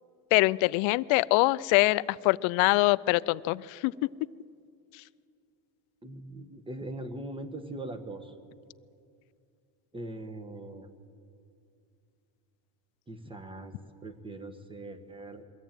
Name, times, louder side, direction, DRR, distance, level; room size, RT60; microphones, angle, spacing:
voice 1, 0.3-3.9, left 21 dB, 90° left, 19 dB, 0.6 m, -24 dB
voice 2, 6.0-8.3 9.9-10.9 13.1-13.7 14.0-15.4, right 2 dB, 10° right, 8 dB, 1.4 m, -41 dB
22.5 x 16.0 x 9.0 m, 2.4 s
cardioid pair, 145°, 45 cm